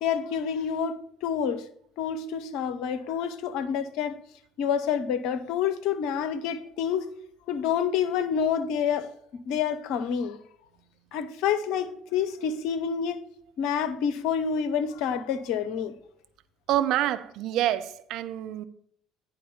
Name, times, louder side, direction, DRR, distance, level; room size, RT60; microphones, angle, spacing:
voice 1, 0.0-1.6 2.0-4.1 4.6-7.1 7.5-9.1 9.5-10.4 11.1-13.2 13.6-15.9, left 7 dB, 60° left, 0.7 m, -28 dB
voice 2, 16.7-18.6, right 12 dB, 60° right, 0.5 m, -27 dB
9.9 x 3.9 x 7.0 m
figure-of-eight pair, 55°, 0 cm